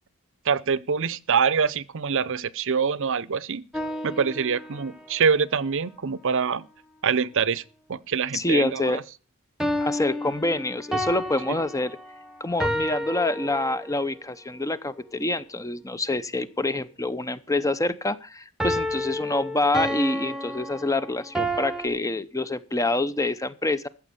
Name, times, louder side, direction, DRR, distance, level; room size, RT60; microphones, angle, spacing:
voice 1, 0.5-3.6 4.0-6.6 7.0-7.6 7.9-8.9, right 6 dB, 60° right, 0.6 m, -25 dB
sound 1, 3.7-5.1 9.6-14.1 18.6-21.9, equal, ahead, 1.3 m, -30 dB
voice 2, 8.3-9.0 9.8-12.0 12.4-23.9, left 2 dB, 15° left, 0.7 m, -26 dB
14.5 x 7.2 x 6.9 m
head